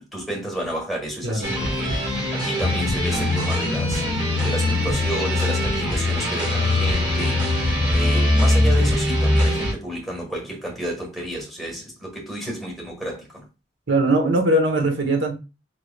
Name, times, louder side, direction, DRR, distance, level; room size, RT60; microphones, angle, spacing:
voice 1, 0.1-4.0 4.4-7.4 7.9-13.4, equal, ahead, 1.5 m, -31 dB
sound 1, 1.4-9.7, equal, 25° right, 1.8 m, -26 dB
sound 2, 2.6-9.5, left 2 dB, 25° left, 0.4 m, -22 dB
voice 2, 13.9-15.4, right 1 dB, 80° right, 1.0 m, -20 dB
5.7 x 3.2 x 2.3 m
head